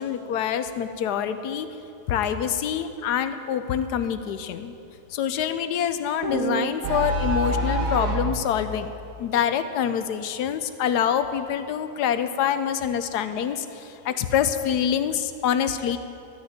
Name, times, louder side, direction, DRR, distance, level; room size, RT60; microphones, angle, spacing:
voice 1, 0.0-1.7 2.1-4.7 5.1-8.9 9.2-16.0, left 9 dB, 90° left, 10 dB, 1.3 m, -26 dB
sound 1, 6.2-8.4, right 1 dB, 60° right, 1.4 m, -25 dB
13.0 x 6.4 x 9.4 m, 2.7 s
omnidirectional pair, 1.7 m